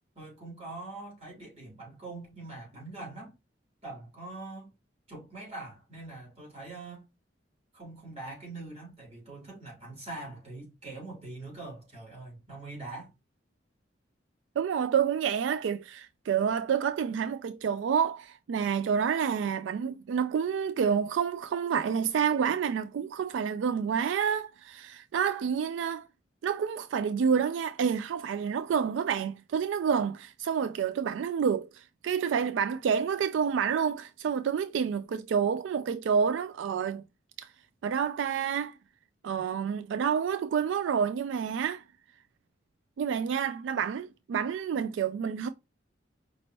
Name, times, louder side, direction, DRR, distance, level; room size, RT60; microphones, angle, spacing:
voice 1, 0.1-3.3 3.8-4.7 5.1-7.1 7.7-13.1, right 2 dB, 35° right, 3.1 m, -43 dB
voice 2, 14.6-26.1 26.4-37.0 37.4-37.5 37.8-38.7 39.2-41.8 43.0-45.5, right 7 dB, 85° right, 0.3 m, -28 dB
5.1 x 3.0 x 2.9 m
head